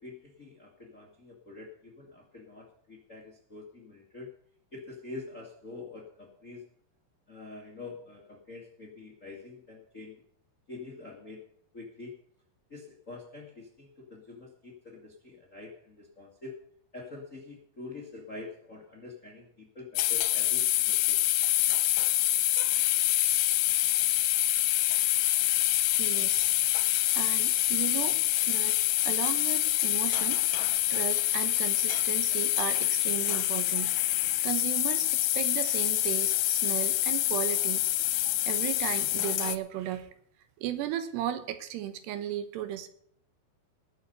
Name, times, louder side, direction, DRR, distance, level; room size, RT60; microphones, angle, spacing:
voice 1, 0.0-4.3 4.7-6.6 7.3-10.2 10.7-11.4 11.7-12.2 12.7-16.5 16.9-21.2, left 3 dB, 35° left, 0 dB, 1.2 m, -46 dB
sound 1, 20.0-39.6, left 15 dB, 85° left, 2.9 m, -26 dB
voice 2, 25.9-26.5 27.1-28.8 29.0-40.1 40.6-42.9, right 11 dB, 85° right, 10 dB, 3.1 m, -36 dB
19.5 x 7.1 x 5.4 m, 0.66 s
omnidirectional pair, 4.8 m